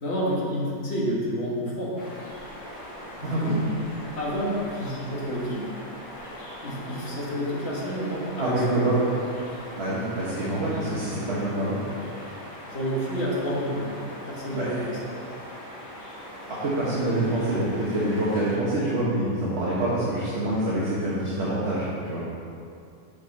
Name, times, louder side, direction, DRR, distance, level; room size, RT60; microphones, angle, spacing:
voice 1, 0.0-2.0 3.2-3.6 4.2-5.6 6.6-8.9 12.7-13.9 14.3-15.1, equal, 45° left, -5 dB, 1.7 m, -29 dB
sound 1, 2.0-18.6, left 1 dB, 65° left, 2.2 m, -41 dB
voice 2, 3.2-3.6 8.4-9.1 9.8-11.8 14.5-15.0 16.5-22.2, right 1 dB, 50° right, -8 dB, 1.4 m, -26 dB
7.2 x 6.4 x 4.2 m, 2.4 s
omnidirectional pair, 1.5 m